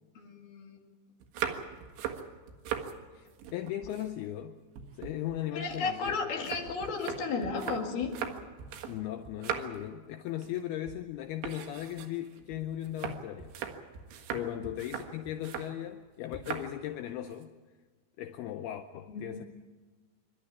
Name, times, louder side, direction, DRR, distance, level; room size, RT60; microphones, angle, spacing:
voice 1, 0.2-0.8 5.5-8.3 19.1-19.5, left 4 dB, 60° left, 2 dB, 3.9 m, -34 dB
sound 1, 1.2-2.9 3.3-4.5 4.8-9.0 9.2-9.9 10.3-10.6 10.9-11.0 11.4-15.7 16.3-16.7 17.1-17.4, right 8 dB, 80° right, 4.0 m, -39 dB
voice 2, 3.1-4.6 5.0-6.2 8.9-13.5 14.3-17.5 18.2-19.5, left 12 dB, 80° left, 8 dB, 2.2 m, -37 dB
27.5 x 12.5 x 9.8 m, 1.4 s
omnidirectional pair, 5.4 m